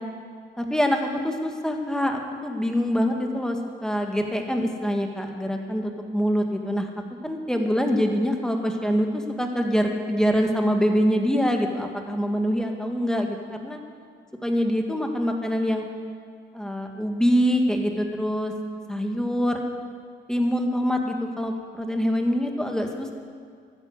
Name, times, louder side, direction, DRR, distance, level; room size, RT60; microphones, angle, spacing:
voice 1, 0.6-6.9 7.2-13.8 14.4-15.9 16.5-18.5 18.9-19.6 20.3-23.1, equal, 5° left, 3 dB, 1.7 m, -25 dB
13.5 x 9.6 x 8.1 m, 2.1 s
cardioid pair, 90°, 20 cm